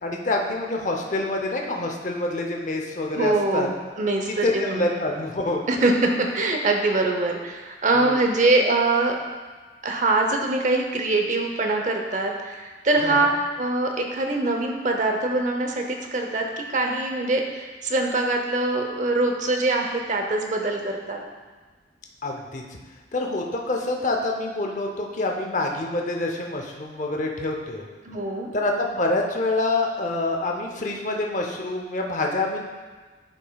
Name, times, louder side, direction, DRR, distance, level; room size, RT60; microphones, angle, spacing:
voice 1, 0.0-3.7 4.3-5.6 8.0-8.2 13.0-13.3 22.2-22.6 23.1-27.9 28.5-32.6, left 2 dB, 40° left, 1 dB, 0.7 m, -26 dB
voice 2, 3.1-4.9 5.7-9.2 9.8-13.3 13.6-21.2 28.0-28.5, right 2 dB, 40° right, 3 dB, 0.7 m, -23 dB
10.5 x 5.3 x 2.3 m, 1.3 s
head